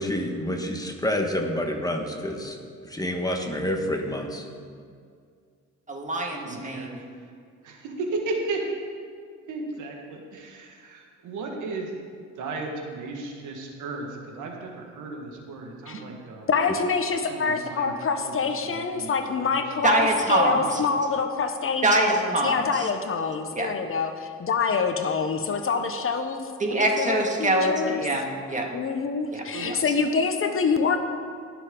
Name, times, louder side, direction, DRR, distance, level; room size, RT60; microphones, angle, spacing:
voice 1, 0.0-2.6 2.8-4.5, left 1 dB, 10° left, 3 dB, 1.4 m, -28 dB
voice 2, 5.9-7.0 19.8-20.8 21.8-22.9 23.5-23.7 26.6-28.7 29.3-29.7, right 1 dB, 25° right, 1 dB, 2.0 m, -24 dB
voice 3, 6.4-6.9 7.6-8.6 9.5-11.9 12.3-16.5 17.2-19.1 19.4-19.9 20.6-21.0 29.5-29.7, right 3 dB, 80° right, 1 dB, 1.7 m, -35 dB
voice 4, 16.5-28.1 28.7-31.0, left 5 dB, 45° left, 7 dB, 0.9 m, -26 dB
20.5 x 6.9 x 3.8 m, 2.1 s
cardioid pair, 90°, 30 cm